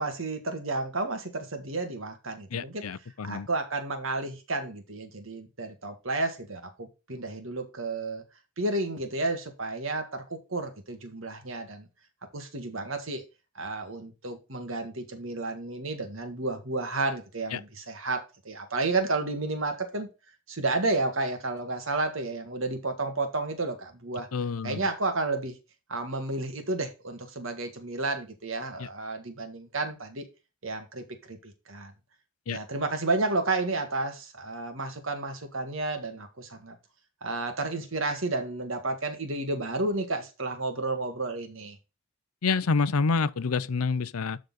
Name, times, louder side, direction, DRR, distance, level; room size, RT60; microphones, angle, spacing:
voice 1, 0.0-2.9 3.2-8.2 8.6-11.9 12.3-13.2 13.6-20.1 20.5-24.3 24.6-25.6 25.9-30.2 30.6-31.9 32.5-36.8 37.2-41.8, right 2 dB, 65° right, 1.8 m, -31 dB
voice 2, 2.5-3.5 17.5-17.6 24.3-24.9 28.8-28.9 32.5-32.6 42.4-44.4, left 4 dB, 90° left, 0.6 m, -28 dB
11.5 x 4.0 x 4.0 m
head